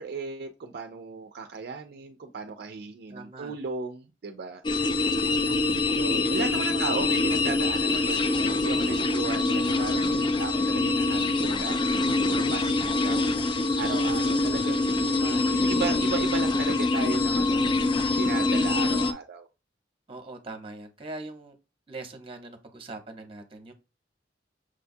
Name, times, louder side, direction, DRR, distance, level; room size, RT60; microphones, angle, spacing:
voice 1, 0.0-4.6 6.0-12.0 12.3-13.2 13.8-19.5, right 5 dB, 60° right, 0.4 m, -36 dB
voice 2, 3.1-3.6 5.2-5.7 6.6-7.2 12.8-13.3 20.1-21.5 21.9-23.7, right 2 dB, 30° right, 0.8 m, -42 dB
sound 1, 4.6-19.1, left 2 dB, 25° left, 0.3 m, -25 dB
6.2 x 2.3 x 2.6 m
head